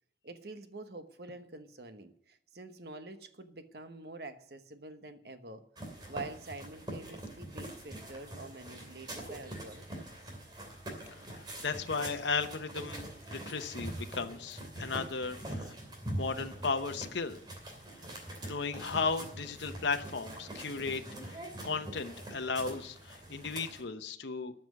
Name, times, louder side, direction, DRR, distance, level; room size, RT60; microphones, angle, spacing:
voice 1, 0.2-5.7 6.1-10.1, right 2 dB, 60° right, 9 dB, 1.2 m, -47 dB
sound 1, 5.8-23.8, right 1 dB, 25° right, 2.8 m, -44 dB
voice 2, 11.3-15.7 16.1-17.4 18.0-18.2 18.4-24.5, left 4 dB, 80° left, 7 dB, 0.9 m, -35 dB
12.5 x 6.1 x 9.5 m, 0.66 s
head